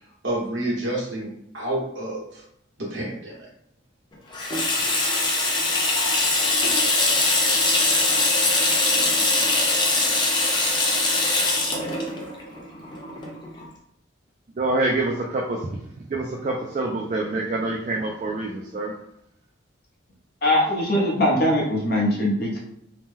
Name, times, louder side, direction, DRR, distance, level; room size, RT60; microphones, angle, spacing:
voice 1, 0.2-2.4 2.8-3.3 5.0-5.2, right 1 dB, 75° right, -3 dB, 1.2 m, -29 dB
Water tap faucet / Sink (filling or washing), 4.3-13.6, left 2 dB, 25° left, 0.5 m, -22 dB
voice 2, 14.6-19.0, right 2 dB, 40° right, -2 dB, 0.3 m, -26 dB
voice 3, 20.4-22.6, left 1 dB, 50° left, -2 dB, 0.8 m, -21 dB
2.9 x 2.1 x 3.5 m, 0.75 s
head